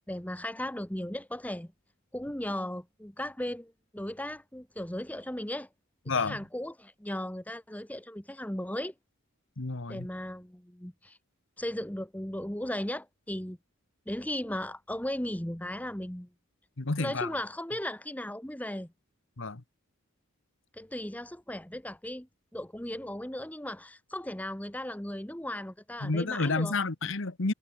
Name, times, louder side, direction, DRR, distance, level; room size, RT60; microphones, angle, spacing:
voice 1, 0.0-1.7 2.1-5.7 6.2-8.9 9.9-11.2 11.6-13.6 14.1-16.3 17.0-18.9 20.7-26.8, left 1 dB, 5° left, 1.2 m, -36 dB
voice 2, 6.1-6.4 9.6-10.1 16.8-17.3 19.4-19.6 26.0-27.5, left 3 dB, 60° left, 1.2 m, -30 dB
head